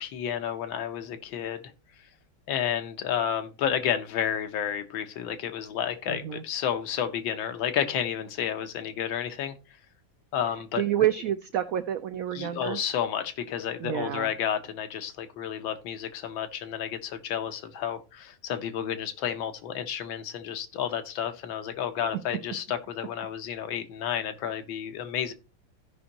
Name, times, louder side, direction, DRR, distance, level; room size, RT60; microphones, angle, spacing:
voice 1, 0.0-1.6 2.5-9.5 10.3-10.8 12.3-25.3, left 9 dB, 90° left, 1.7 m, -31 dB
voice 2, 6.1-6.4 10.8-12.8 13.8-14.3, right 11 dB, 85° right, 0.7 m, -28 dB
15.5 x 5.3 x 2.9 m
omnidirectional pair, 2.1 m